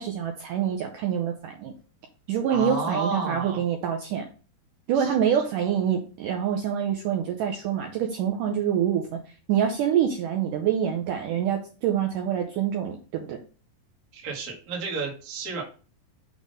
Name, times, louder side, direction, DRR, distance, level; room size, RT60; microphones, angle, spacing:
voice 1, 0.0-1.7 2.3-4.3 4.9-13.4, right 9 dB, 80° right, 3 dB, 1.9 m, -26 dB
voice 2, 2.5-3.6 4.9-5.1 14.1-15.6, right 4 dB, 65° right, 0 dB, 0.9 m, -31 dB
6.2 x 3.6 x 5.2 m, 0.37 s
omnidirectional pair, 4.5 m